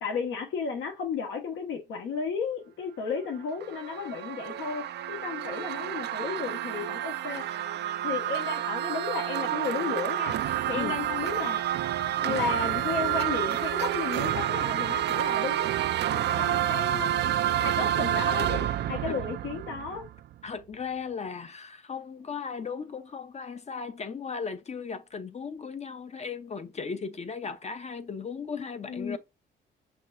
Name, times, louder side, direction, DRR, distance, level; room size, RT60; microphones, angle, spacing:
voice 1, 0.0-7.4 8.0-10.4 10.7-11.6 12.2-15.7 16.1-20.0 28.9-29.2, left 5 dB, 85° left, 1.5 m, -33 dB
sound 1, 3.4-20.3, right 12 dB, 60° right, 0.4 m, -29 dB
voice 2, 20.4-29.2, left 5 dB, 35° left, 0.7 m, -36 dB
5.8 x 2.9 x 2.5 m
cardioid pair, 90°, 20 cm